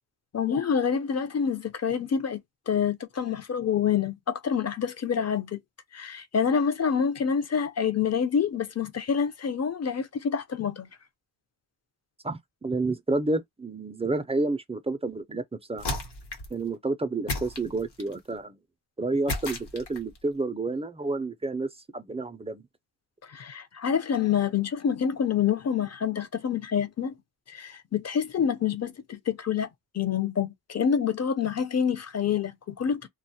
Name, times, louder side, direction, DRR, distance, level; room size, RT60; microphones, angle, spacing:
voice 1, 0.3-2.4 2.7-5.6 5.9-10.9 23.3-27.1 27.5-29.7 29.9-33.0, left 7 dB, 40° left, 0.6 m, -27 dB
voice 2, 12.2-15.4 15.7-15.8 16.5-18.6 19.0-22.6, right 2 dB, 15° right, 0.3 m, -30 dB
sound 1, 15.8-16.6 17.3-18.2 19.3-20.2, left 2 dB, 70° left, 1.0 m, -33 dB
2.2 x 2.1 x 2.6 m
cardioid pair, 85°, 42 cm